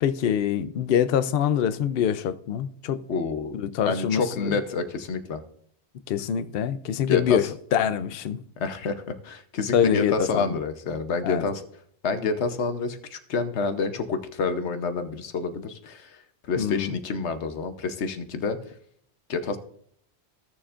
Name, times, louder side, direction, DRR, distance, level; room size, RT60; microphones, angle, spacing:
voice 1, 0.0-3.0 3.5-4.6 6.1-8.4 9.7-10.6 11.2-11.4 16.6-17.0, left 9 dB, 65° left, 0.8 m, -25 dB
voice 2, 3.1-3.6 3.8-5.4 7.0-7.4 8.6-11.6 12.0-16.2 16.5-18.6 19.3-19.6, left 4 dB, 85° left, 1.2 m, -28 dB
15.5 x 6.9 x 2.5 m
omnidirectional pair, 1.1 m